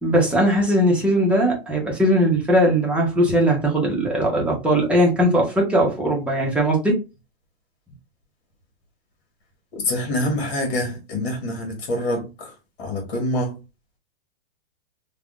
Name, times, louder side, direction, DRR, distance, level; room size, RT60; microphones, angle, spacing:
voice 1, 0.0-7.0, right 1 dB, 5° right, 0.9 m, -19 dB
voice 2, 9.7-12.5 12.8-13.6, left 1 dB, 65° left, 1.3 m, -26 dB
3.3 x 2.4 x 2.4 m
hypercardioid pair, 130°, 31 cm